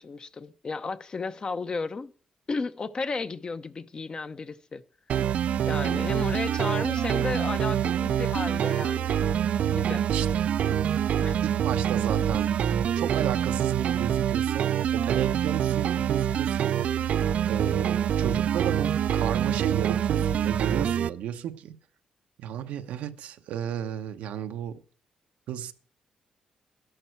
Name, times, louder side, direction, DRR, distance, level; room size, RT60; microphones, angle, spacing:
voice 1, 0.0-2.1 2.5-4.8 5.7-9.2 9.7-10.0 11.2-11.4, left 4 dB, 40° left, 0.8 m, -33 dB
sound 1, 5.1-21.1, right 9 dB, 70° right, 0.4 m, -25 dB
voice 2, 10.1-10.5 11.4-17.1 17.4-21.8 22.4-24.8 25.5-25.7, right 10 dB, 85° right, 0.8 m, -34 dB
12.5 x 11.5 x 4.5 m
cardioid pair, 75°, 2 cm